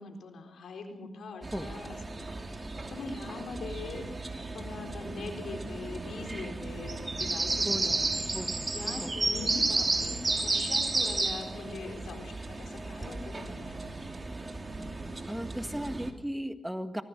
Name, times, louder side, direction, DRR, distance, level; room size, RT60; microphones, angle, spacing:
voice 1, 0.0-1.9 2.1-2.3 2.9-8.2 8.7-14.1, left 4 dB, 85° left, 4 dB, 4.1 m, -42 dB
sound 1, 1.4-16.1, right 3 dB, 35° right, 2.9 m, -33 dB
voice 2, 7.7-8.7 9.0-9.2 9.4-9.5 14.9-17.0, equal, 5° right, 9 dB, 1.7 m, -37 dB
24.5 x 19.5 x 6.2 m, 0.86 s
cardioid pair, 65°, 0 cm